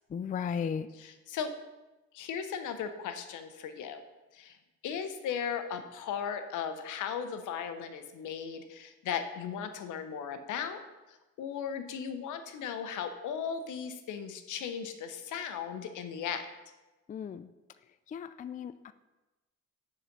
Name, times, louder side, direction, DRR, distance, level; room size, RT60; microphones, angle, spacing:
voice 1, 0.1-0.9 17.1-17.5 18.1-18.9, left 7 dB, 25° left, 13 dB, 0.4 m, -35 dB
voice 2, 1.0-1.5 2.1-4.0 4.3-4.6 4.8-10.8 11.1-16.4, left 7 dB, 85° left, 8 dB, 0.9 m, -37 dB
10.0 x 4.2 x 6.0 m, 1.1 s
cardioid pair, 90°, 30 cm